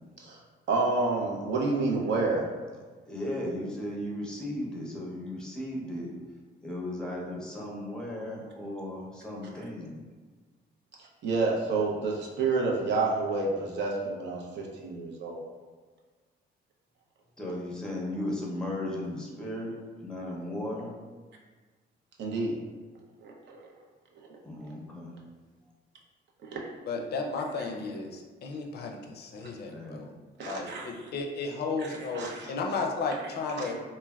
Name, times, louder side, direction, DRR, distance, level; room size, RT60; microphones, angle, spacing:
voice 1, 0.7-2.5 11.2-15.4 22.2-22.5 23.2-23.7 26.4-26.7 30.4-30.9 31.8-32.5 33.5-33.7, right 3 dB, 65° right, -1 dB, 0.6 m, -29 dB
voice 2, 3.1-6.1 6.6-10.0 17.4-20.9 24.4-25.2 29.6-30.1, left 1 dB, 5° left, -3 dB, 0.6 m, -36 dB
voice 3, 26.9-30.1 30.4-33.8, left 4 dB, 55° left, 2 dB, 0.4 m, -34 dB
3.2 x 2.1 x 2.3 m, 1.4 s
cardioid pair, 90°, 20 cm